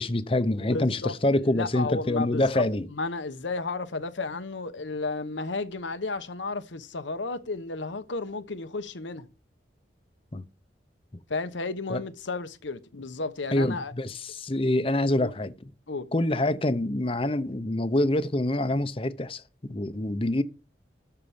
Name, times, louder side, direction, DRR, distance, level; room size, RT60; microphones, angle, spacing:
voice 1, 0.0-2.9 10.3-10.4 11.9-12.0 13.5-15.5 16.1-20.4, left 1 dB, 30° left, 0.8 m, -26 dB
voice 2, 0.7-1.2 1.4-9.3 11.3-13.9 15.2-15.3 15.9-16.1, left 3 dB, 90° left, 1.0 m, -33 dB
13.0 x 4.7 x 7.1 m
head